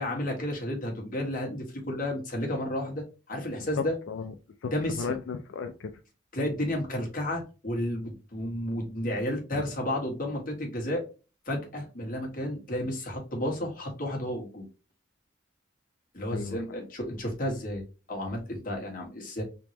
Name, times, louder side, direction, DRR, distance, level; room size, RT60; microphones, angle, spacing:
voice 1, 0.0-3.9 4.7-5.1 6.3-11.0 11.5-14.6 16.1-17.8 18.1-19.4, left 1 dB, 45° left, 0 dB, 1.5 m, -32 dB
voice 2, 3.7-4.3 4.6-5.9 9.5-9.7 16.3-16.6, left 5 dB, 85° left, 6 dB, 0.4 m, -34 dB
3.6 x 2.9 x 3.1 m, 0.32 s
head